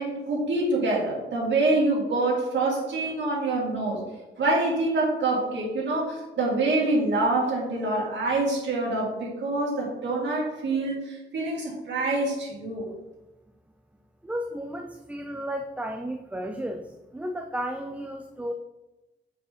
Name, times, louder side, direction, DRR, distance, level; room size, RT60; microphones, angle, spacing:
voice 1, 0.0-4.0 4.4-12.9, right 2 dB, 65° right, -5 dB, 2.3 m, -26 dB
voice 2, 14.2-18.5, equal, 5° right, 4 dB, 0.3 m, -33 dB
7.0 x 4.8 x 4.2 m, 1.0 s
wide cardioid pair, 170°, 20 cm